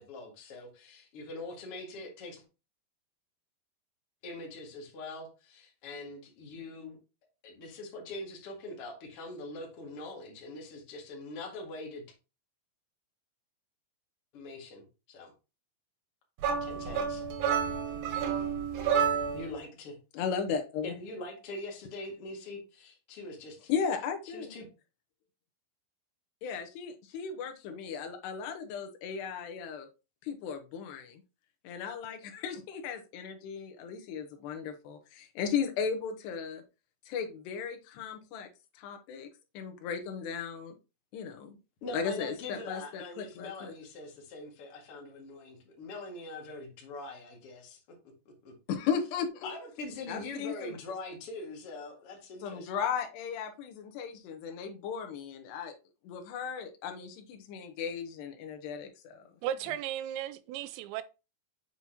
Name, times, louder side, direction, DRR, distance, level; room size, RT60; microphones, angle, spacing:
voice 1, 0.0-2.4 4.2-7.0 7.4-12.0 14.3-15.3 16.5-17.2 19.3-20.0 20.8-23.7 24.3-24.7 41.8-47.8 48.4-48.5 49.4-52.7, left 2 dB, 45° left, 2.2 m, -43 dB
sound 1, 16.4-19.5, right 7 dB, 65° right, 2.9 m, -30 dB
voice 2, 20.1-20.9 23.7-24.5 26.4-29.9 30.2-31.2 31.6-36.6 37.1-38.5 38.8-39.3 39.5-40.8 41.1-41.6 41.9-43.7 48.7-49.5 50.1-50.8 52.4-55.7 56.0-59.3, left 6 dB, 75° left, 3.0 m, -36 dB
voice 3, 59.4-61.0, right 11 dB, 85° right, 2.9 m, -35 dB
7.9 x 5.6 x 2.9 m
omnidirectional pair, 5.1 m